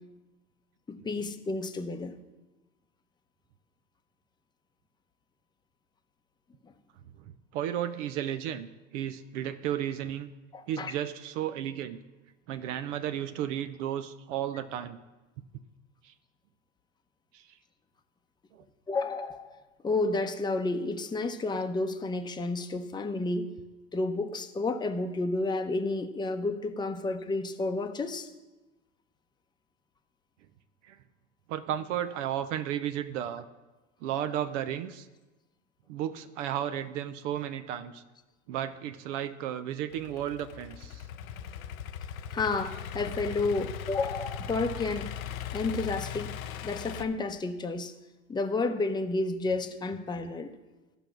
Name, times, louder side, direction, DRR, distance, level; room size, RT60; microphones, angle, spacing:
voice 1, 0.9-2.1 10.5-10.9 18.9-19.6 19.8-23.5 23.9-28.3 42.3-45.1 45.5-46.3 46.6-47.9 48.3-50.6, left 3 dB, 10° left, 6 dB, 0.8 m, -31 dB
voice 2, 7.5-10.3 10.7-12.0 12.5-15.0 16.0-16.1 17.3-17.5 18.5-18.6 30.8-31.0 31.5-33.5 34.0-35.1 35.9-38.0 38.5-41.1, right 10 dB, 65° right, 11 dB, 0.8 m, -33 dB
Idling / Accelerating revving vroom, 39.9-47.0, left 8 dB, 80° left, 0.7 m, -39 dB
14.5 x 5.3 x 6.0 m, 1.1 s
hypercardioid pair, 95°, 40 cm